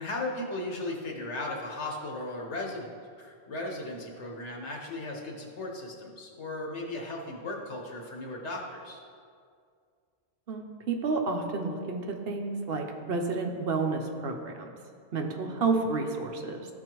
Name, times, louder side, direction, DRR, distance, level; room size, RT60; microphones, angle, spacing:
voice 1, 0.0-9.0, left 2 dB, 80° left, -1 dB, 1.4 m, -36 dB
voice 2, 10.5-14.7 15.1-16.7, right 3 dB, 65° right, 3 dB, 0.9 m, -30 dB
12.5 x 4.4 x 3.0 m, 2.2 s
omnidirectional pair, 1.2 m